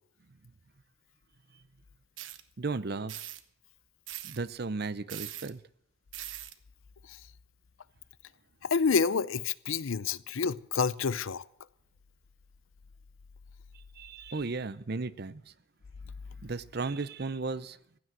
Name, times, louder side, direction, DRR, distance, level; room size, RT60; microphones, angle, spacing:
sound 1, 2.2-2.4 3.1-3.4 4.1-4.4 5.1-5.5 6.1-6.5, right 13 dB, 70° right, 1.1 m, -41 dB
voice 1, 2.6-3.2 4.2-5.6 14.0-15.5 16.4-17.8, right 3 dB, 50° right, 0.6 m, -35 dB
voice 2, 8.6-11.4, left 5 dB, 80° left, 0.6 m, -28 dB
16.0 x 11.0 x 7.8 m
head